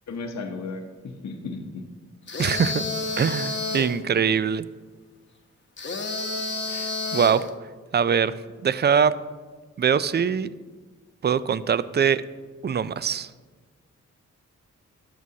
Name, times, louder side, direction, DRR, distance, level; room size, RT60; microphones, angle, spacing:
voice 1, 0.1-0.9 1.2-1.8, left 3 dB, 65° left, 3 dB, 0.9 m, -34 dB
sound 1, 2.3-4.0 5.8-7.5, left 3 dB, 40° left, 0.9 m, -30 dB
voice 2, 2.4-2.8 3.2-4.7 6.7-7.5 7.9-8.3 8.6-9.1 9.8-10.5 11.2-12.2 12.6-13.3, right 7 dB, 35° right, 16 dB, 0.4 m, -22 dB
12.0 x 6.1 x 2.8 m, 1.4 s
cardioid pair, 55°, 30 cm